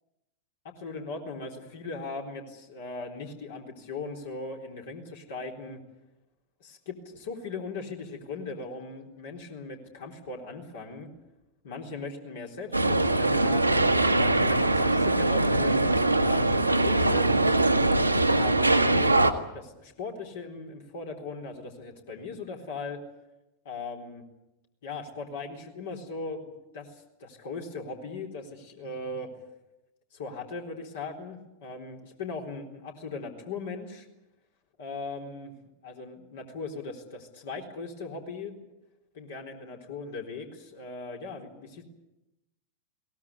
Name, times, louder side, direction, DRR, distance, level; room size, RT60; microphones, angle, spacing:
voice 1, 0.8-5.8 6.6-11.1 11.6-17.4 18.1-19.2 19.5-23.0 23.6-24.2 24.8-29.3 30.1-34.1 34.8-35.5 35.8-38.6 39.1-41.8, left 3 dB, 55° left, 1 dB, 4.0 m, -39 dB
sound 1, 12.7-19.3, right 2 dB, 85° right, 1.5 m, -22 dB
22.0 x 19.0 x 9.7 m, 0.95 s
figure-of-eight pair, 90°, 0 cm